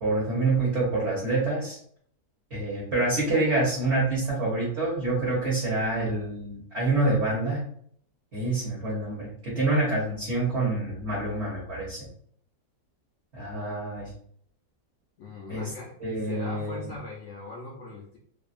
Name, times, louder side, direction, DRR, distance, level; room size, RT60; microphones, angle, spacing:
voice 1, 0.0-1.8 2.5-7.6 8.3-12.0 13.3-14.1 15.5-15.7 16.0-16.9, right 2 dB, 50° right, -6 dB, 0.9 m, -27 dB
voice 2, 15.2-18.2, left 2 dB, 80° left, -2 dB, 0.6 m, -41 dB
2.7 x 2.4 x 2.4 m, 0.63 s
omnidirectional pair, 1.8 m